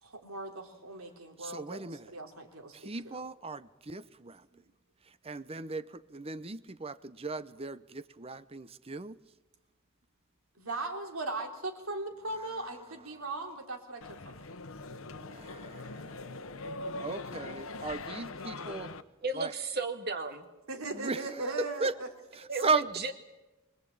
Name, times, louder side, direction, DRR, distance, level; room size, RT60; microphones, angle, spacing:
voice 1, 0.0-3.2 4.5-4.6 10.6-14.5 20.7-22.1, right 2 dB, 75° right, 4 dB, 3.5 m, -39 dB
voice 2, 1.4-2.1 2.7-4.4 5.2-9.2 12.5-12.6 15.0-16.4 17.0-18.9 19.3-19.5 20.9-21.9 22.3-22.9, right 3 dB, 25° right, 15 dB, 0.7 m, -36 dB
sound 1, 14.0-19.0, left 3 dB, 70° left, 1.1 m, -42 dB
voice 3, 19.2-20.5 22.5-23.1, right 3 dB, 50° right, 7 dB, 2.2 m, -34 dB
24.5 x 20.0 x 8.6 m, 1.1 s
head